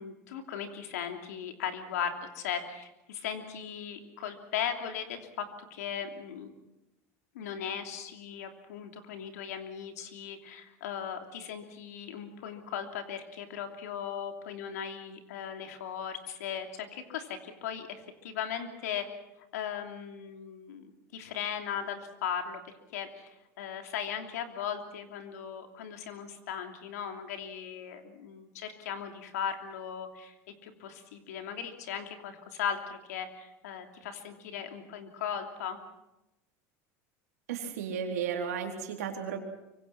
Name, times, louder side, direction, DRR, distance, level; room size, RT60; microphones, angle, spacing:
voice 1, 0.0-6.5 7.3-19.0 19.5-22.6 22.9-35.8, left 8 dB, 85° left, 5 dB, 3.0 m, -38 dB
voice 2, 37.5-39.4, right 7 dB, 90° right, 3 dB, 4.0 m, -34 dB
25.0 x 24.5 x 5.9 m, 0.93 s
supercardioid pair, 100°, 8 cm